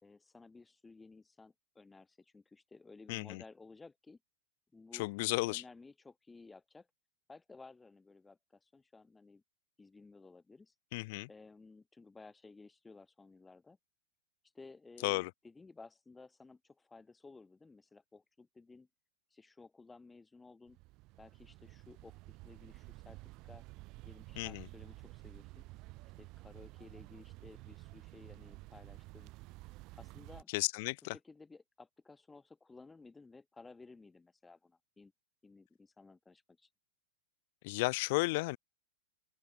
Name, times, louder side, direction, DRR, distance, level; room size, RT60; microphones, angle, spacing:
voice 1, 0.0-4.2 4.7-6.9 7.3-9.4 9.8-10.7 11.3-13.8 14.5-18.9 19.3-20.8 21.2-23.2 23.4-23.6 24.0-25.6 26.2-29.3 30.0-30.5 31.0-35.1 35.4-36.7, left 3 dB, 10° left, 2.9 m, -56 dB
voice 2, 3.1-3.4 5.0-5.6 10.9-11.3 15.0-15.3 24.4-24.6 30.5-31.1 37.6-38.6, left 24 dB, 55° left, 0.5 m, -33 dB
sound 1, 20.7-30.4, right 22 dB, 45° right, 2.6 m, -52 dB
open air
hypercardioid pair, 125°, 0 cm